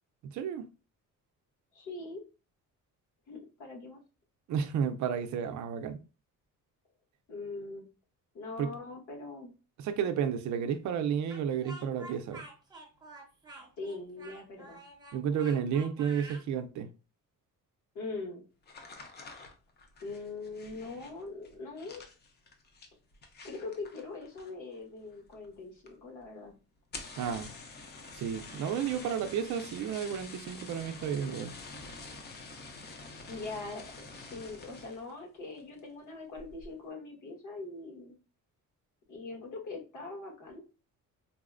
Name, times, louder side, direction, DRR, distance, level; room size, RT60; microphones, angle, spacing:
voice 1, 0.2-0.6 4.5-6.0 8.6-8.7 9.8-12.4 15.1-16.9 27.2-27.5 28.1-31.5, right 8 dB, 60° right, 0.4 m, -32 dB
voice 2, 1.7-2.2 3.3-4.0 7.3-7.9 8.3-9.5 13.8-14.8 17.9-18.4 20.0-22.0 23.4-26.5 33.3-38.2 39.1-40.6, left 3 dB, 65° left, 1.3 m, -42 dB
Speech, 11.3-16.4, right 2 dB, 10° right, 0.6 m, -49 dB
sound 1, 18.6-24.8 25.0-25.6 25.9-26.0 26.2-26.3 26.8-35.1 35.6-35.9 36.3-36.7, left 3 dB, 30° left, 0.5 m, -47 dB
3.9 x 2.1 x 2.4 m
cardioid pair, 165°, 33 cm